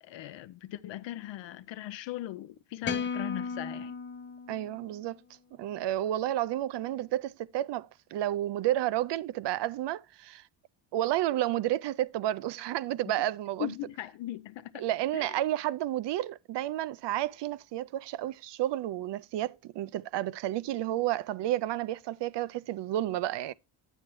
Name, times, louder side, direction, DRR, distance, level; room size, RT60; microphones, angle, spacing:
voice 1, 0.0-3.9 13.2-13.3 13.6-14.9 15.1-15.4, left 14 dB, 70° left, 0.6 m, -39 dB
sound 1, 2.8-5.2, left 5 dB, 25° left, 0.5 m, -36 dB
voice 2, 4.5-5.2 5.6-10.4 10.9-13.7 14.8-23.5, right 13 dB, 65° right, 0.5 m, -31 dB
9.0 x 8.7 x 3.0 m
cardioid pair, 130°, 47 cm